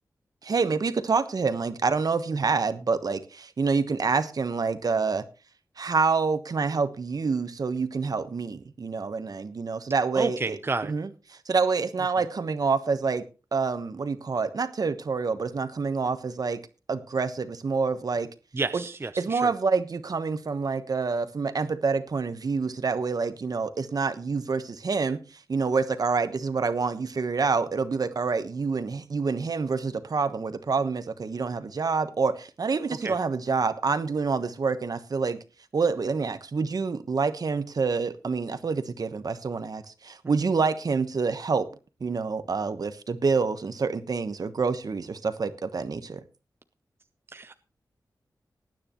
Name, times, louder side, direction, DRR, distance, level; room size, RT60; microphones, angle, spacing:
voice 1, 0.4-5.2 5.8-10.6 10.9-11.1 11.5-13.3 13.5-16.6 16.9-18.3 18.7-18.8 19.2-25.2 25.5-35.4 35.7-41.7 42.0-46.2, right 4 dB, 60° right, 11 dB, 1.1 m, -27 dB
voice 2, 10.1-10.9 18.5-19.5 33.0-33.2 40.2-40.4 47.3-47.5, right 3 dB, 35° right, 10 dB, 0.7 m, -31 dB
19.5 x 9.7 x 3.1 m, 0.32 s
wide cardioid pair, 90°, 7 cm